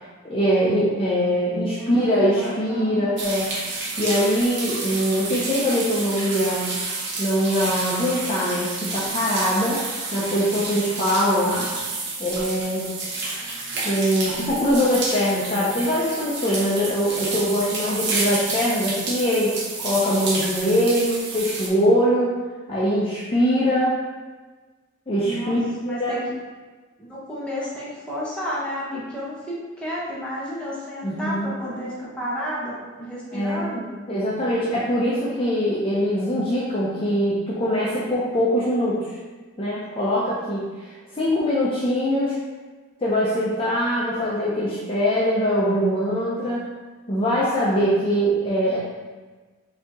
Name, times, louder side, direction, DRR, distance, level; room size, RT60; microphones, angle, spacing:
voice 1, 0.0-6.7 7.2-11.7 12.2-12.9 13.8-22.3 22.7-23.9 25.1-25.6 25.9-26.1 31.0-31.5 33.3-33.6 34.1-39.2 39.6-40.9 41.2-42.4 43.0-46.7 47.1-48.8, equal, 25° left, -7 dB, 0.6 m, -22 dB
voice 2, 1.8-3.1 25.3-26.3 27.0-33.9, equal, 5° left, -8 dB, 1.0 m, -32 dB
sound 1, 3.2-21.7, right 3 dB, 55° right, 0.9 m, -30 dB
5.0 x 2.9 x 3.6 m, 1.3 s
head